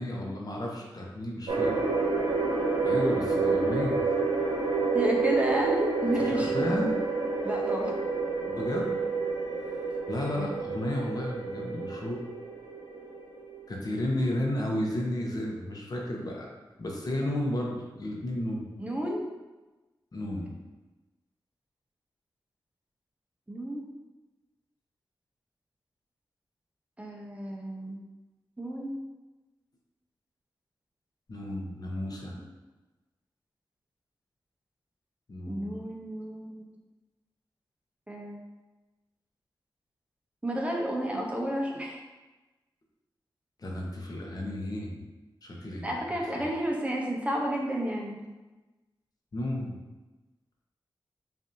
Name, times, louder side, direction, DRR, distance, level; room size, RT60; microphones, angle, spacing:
voice 1, 0.0-1.8 2.8-4.0 6.2-7.0 8.5-8.9 9.6-9.8 10.1-12.2 13.7-16.5 16.8-18.7 20.1-20.5 31.3-32.3 35.3-35.8 43.6-45.0 45.4-46.0 46.4-46.5 49.3-49.8, left 1 dB, 50° left, -1 dB, 0.8 m, -33 dB
sound 1, 1.5-13.7, right 4 dB, 85° right, 0.7 m, -29 dB
voice 2, 4.9-6.7 7.4-7.9 10.3-10.5 18.8-19.3 23.5-23.9 27.0-28.0 28.6-29.0 32.4-32.5 35.5-36.7 38.1-38.4 40.4-42.0 45.8-48.3, equal, 15° right, -1 dB, 0.8 m, -31 dB
5.2 x 2.6 x 2.7 m, 1.1 s
cardioid pair, 60°, 8 cm